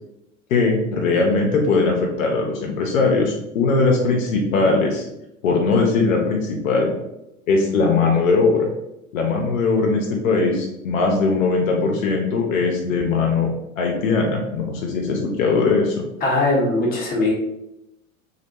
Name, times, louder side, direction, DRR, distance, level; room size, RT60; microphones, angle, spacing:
voice 1, 0.5-5.1 5.4-6.9 7.5-8.7 9.1-13.5 13.8-16.0, left 4 dB, 65° left, 0 dB, 0.6 m, -20 dB
voice 2, 16.2-17.3, left 2 dB, 20° left, -3 dB, 0.8 m, -20 dB
2.6 x 2.1 x 2.8 m, 0.87 s
figure-of-eight pair, 85°, 44 cm